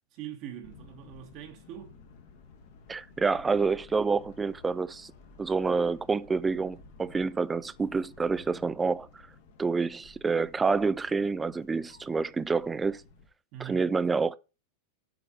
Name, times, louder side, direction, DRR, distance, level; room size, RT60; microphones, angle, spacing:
voice 1, 0.1-2.0 13.5-13.9, right 10 dB, 40° right, 1.2 m, -42 dB
sound 1, 0.6-13.3, left 4 dB, 50° left, 1.5 m, -54 dB
voice 2, 2.9-5.1 5.4-9.2 9.6-13.0 13.7-14.4, right 4 dB, 15° right, 0.4 m, -28 dB
7.5 x 4.6 x 6.0 m
figure-of-eight pair, 90°, 0 cm